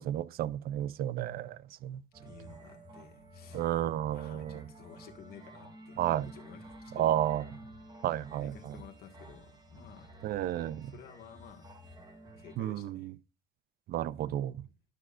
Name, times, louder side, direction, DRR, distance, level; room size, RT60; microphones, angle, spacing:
voice 1, 0.0-2.0 3.5-4.6 6.0-6.3 6.9-7.5 8.0-8.8 10.2-10.9 12.6-13.1 13.9-14.6, right 12 dB, 65° right, 0.5 m, -32 dB
sound 1, 2.1-12.6, right 1 dB, 25° right, 2.4 m, -51 dB
voice 2, 2.2-3.7 4.0-7.1 8.4-10.1 10.9-11.7 12.3-13.1 14.6-14.7, left 8 dB, 65° left, 1.7 m, -53 dB
12.0 x 6.2 x 2.4 m
cardioid pair, 110°, 17 cm